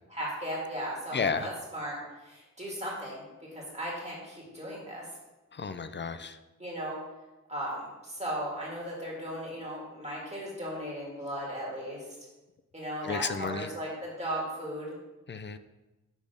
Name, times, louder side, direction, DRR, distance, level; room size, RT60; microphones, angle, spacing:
voice 1, 0.1-5.1 6.6-7.0 7.5-12.2 12.7-14.9, equal, 20° right, -4 dB, 1.9 m, -36 dB
voice 2, 1.1-1.5 5.5-6.4 13.0-13.7 15.3-15.6, left 5 dB, 40° left, 11 dB, 0.4 m, -32 dB
6.2 x 3.4 x 5.1 m, 1.1 s
wide cardioid pair, 80°, 30 cm